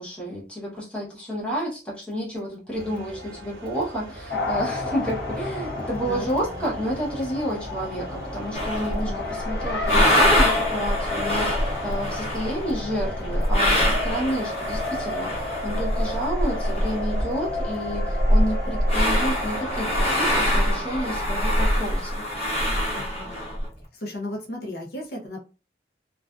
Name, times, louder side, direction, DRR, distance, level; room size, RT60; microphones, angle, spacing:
voice 1, 0.0-22.2, equal, 5° left, -4 dB, 0.8 m, -30 dB
sound 1, 2.7-21.2, equal, 60° right, 0.6 m, -40 dB
Race car auto racing, 4.3-20.2, left 2 dB, 75° left, 0.9 m, -32 dB
voice 2, 6.0-6.6 8.9-9.3 22.9-23.5 23.9-25.4, left 1 dB, 60° left, 1 dB, 0.6 m, -36 dB
sound 2, 8.5-9.1 9.5-17.3 17.6-17.7 17.9-23.7, equal, 35° left, 0.9 m, -24 dB
2.4 x 2.2 x 2.3 m, 0.32 s
head